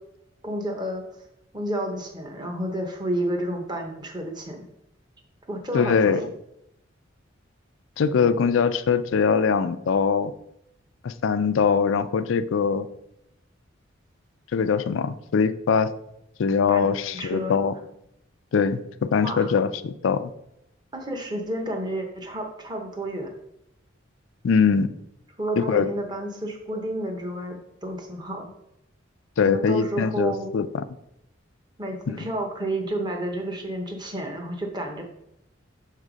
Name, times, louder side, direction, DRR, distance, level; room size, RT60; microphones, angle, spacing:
voice 1, 0.4-1.0 1.5-4.6 5.5-6.3 16.7-16.9 17.1-17.6 19.2-19.5 20.9-23.3 25.4-28.5 29.4-30.5 31.8-35.0, right 1 dB, 20° right, 2 dB, 0.9 m, -30 dB
voice 2, 5.7-6.2 8.0-10.3 11.0-12.9 14.5-15.9 16.4-17.7 18.5-20.3 24.4-24.9 25.6-25.9 29.4-30.8 32.1-32.2, left 6 dB, 80° left, 12 dB, 0.4 m, -22 dB
6.6 x 3.5 x 5.0 m, 0.80 s
head